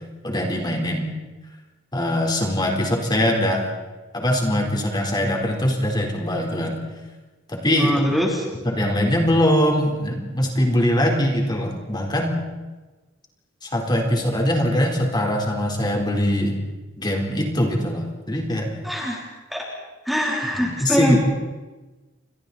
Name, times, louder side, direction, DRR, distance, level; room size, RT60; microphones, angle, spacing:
voice 1, 0.2-1.1 1.9-3.7 4.1-6.8 7.5-7.9 8.6-12.4 13.6-16.6 17.0-18.8 20.5-21.2, left 1 dB, 25° left, 1 dB, 4.2 m, -22 dB
voice 2, 7.8-8.4 18.8-19.2 19.5-19.7 20.1-21.2, equal, ahead, -2 dB, 3.6 m, -23 dB
30.0 x 25.5 x 4.3 m, 1.2 s
head